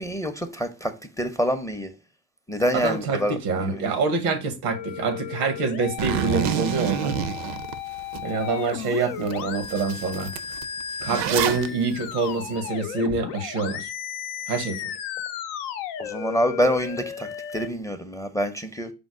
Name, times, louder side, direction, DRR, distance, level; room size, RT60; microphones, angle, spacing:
voice 1, 0.0-1.9 2.5-3.9 16.0-18.9, equal, 5° left, 0.5 m, -26 dB
voice 2, 2.7-7.2 8.2-10.3 11.0-13.9 14.5-14.9, right 4 dB, 85° right, 0.9 m, -26 dB
sound 1, 4.6-17.7, left 9 dB, 85° left, 0.6 m, -35 dB
Zipper (clothing), 6.0-8.2 8.7-8.8 9.3-9.4 9.6-11.7, right 9 dB, 65° right, 0.6 m, -27 dB
5.1 x 2.0 x 4.8 m
hypercardioid pair, 65°, 45 cm